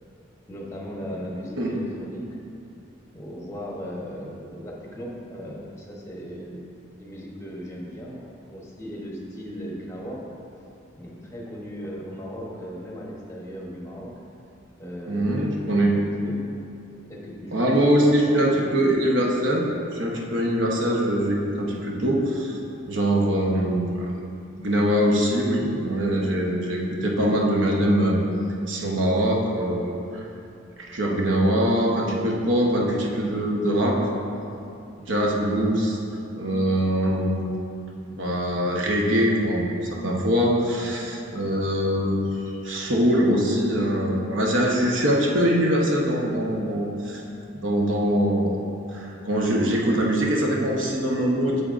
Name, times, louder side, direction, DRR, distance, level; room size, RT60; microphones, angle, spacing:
voice 1, 0.5-2.2 3.1-6.7 7.0-10.2 11.0-14.1 14.8-16.0 16.2-16.4 17.0-18.1 18.7-19.0, equal, 15° left, -3 dB, 1.0 m, -37 dB
voice 2, 15.1-15.9 17.5-19.6 19.9-22.6 22.9-24.1 24.6-28.2 28.7-30.2 30.9-34.0 35.0-36.0 36.4-37.4 38.1-39.7 40.0-42.2 42.6-47.2 47.5-48.6 48.9-51.6, equal, 65° right, -2 dB, 1.0 m, -23 dB
8.7 x 6.7 x 2.6 m, 2.6 s
head